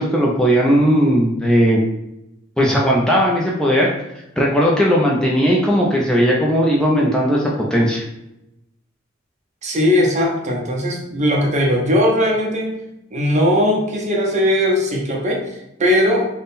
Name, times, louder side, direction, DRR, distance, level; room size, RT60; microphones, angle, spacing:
voice 1, 0.0-1.8 2.6-3.9 4.4-8.0, equal, 5° left, -4 dB, 0.4 m, -17 dB
voice 2, 9.6-12.8 13.1-16.3, left 1 dB, 35° right, 0 dB, 0.7 m, -18 dB
3.6 x 2.1 x 4.0 m, 0.87 s
head